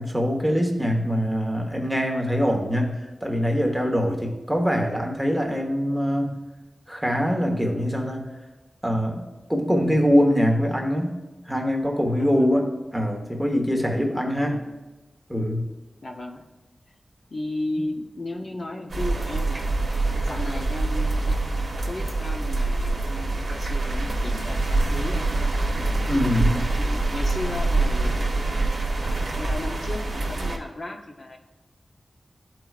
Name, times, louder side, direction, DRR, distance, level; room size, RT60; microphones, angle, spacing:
voice 1, 0.0-6.4 6.9-8.2 8.8-9.2 9.5-11.1 11.5-14.6 15.3-15.6 26.1-26.6, equal, ahead, 1 dB, 1.1 m, -23 dB
voice 2, 12.2-12.5 14.4-14.7 16.0-16.4 17.3-19.6 20.1-25.3 25.8-31.4, left 2 dB, 45° left, 1 dB, 0.7 m, -35 dB
sound 1, 18.9-30.6, right 2 dB, 55° right, 0.9 m, -25 dB
12.0 x 4.6 x 2.4 m, 1.1 s
wide cardioid pair, 115°, 0 cm